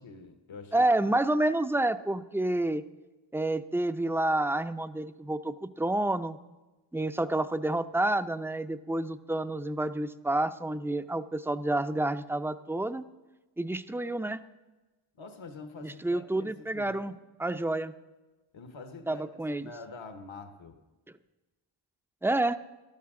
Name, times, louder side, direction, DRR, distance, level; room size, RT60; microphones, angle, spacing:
voice 1, 0.0-1.1 15.2-17.1 18.5-19.3 19.6-20.8, left 3 dB, 70° left, 7 dB, 1.2 m, -46 dB
voice 2, 0.7-2.8 3.3-6.4 6.9-13.0 13.6-14.4 15.8-17.1 17.4-17.9 19.1-19.7 22.2-22.6, right 1 dB, 5° right, 11 dB, 0.5 m, -29 dB
15.5 x 13.0 x 3.7 m, 1.1 s
wide cardioid pair, 55°, 48 cm